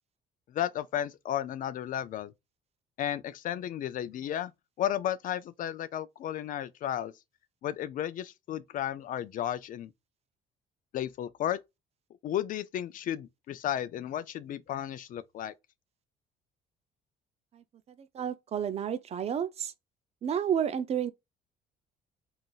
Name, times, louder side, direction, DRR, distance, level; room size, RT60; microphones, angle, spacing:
voice 1, 0.5-2.3 3.0-4.5 4.8-7.1 7.6-9.9 10.9-11.6 12.2-15.5, left 11 dB, 55° left, 0.4 m, -33 dB
voice 2, 18.0-19.7 20.2-21.1, right 8 dB, 40° right, 0.4 m, -31 dB
3.8 x 2.5 x 2.3 m
cardioid pair, 110°, 17 cm